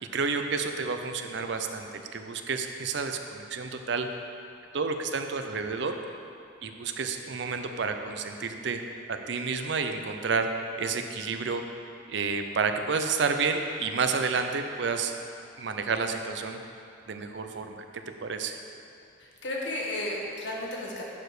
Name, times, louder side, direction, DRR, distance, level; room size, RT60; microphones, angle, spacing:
voice 1, 0.0-4.1 4.7-5.9 6.6-8.8 9.1-10.5 10.8-11.6 12.1-15.1 15.6-16.6 17.1-17.9 18.2-18.6, right 4 dB, 60° right, 6 dB, 0.5 m, -30 dB
voice 2, 19.2-21.0, left 1 dB, 60° left, -2 dB, 1.4 m, -33 dB
11.0 x 4.9 x 4.8 m, 2.5 s
head